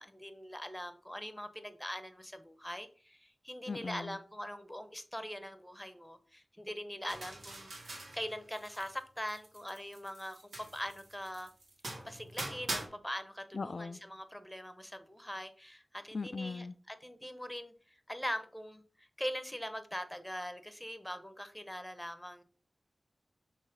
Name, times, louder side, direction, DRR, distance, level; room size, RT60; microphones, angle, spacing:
voice 1, 0.0-11.5 12.0-22.4, equal, 10° left, 0.9 m, -42 dB
voice 2, 3.7-4.2 13.5-14.0 16.1-16.7, left 4 dB, 70° left, 0.3 m, -39 dB
sound 1, 7.1-9.0 9.3-12.9, right 2 dB, 85° right, 1.9 m, -43 dB
6.5 x 3.1 x 5.4 m
wide cardioid pair, 55°, 0 cm